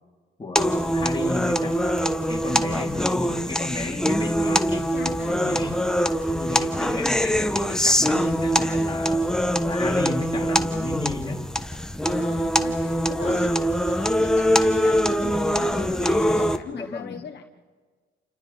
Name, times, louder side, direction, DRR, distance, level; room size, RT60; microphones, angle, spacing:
voice 1, 0.4-4.9 5.4-5.9 6.3-11.5 16.7-17.2, left 3 dB, 25° left, 0 dB, 2.8 m, -33 dB
sound 1, 0.6-16.6, equal, 5° left, 1.1 m, -23 dB
voice 2, 4.9-5.8 12.0-17.4, left 8 dB, 60° left, 4 dB, 1.2 m, -39 dB
30.0 x 29.0 x 4.0 m, 1.5 s
cardioid pair, 90°, 20 cm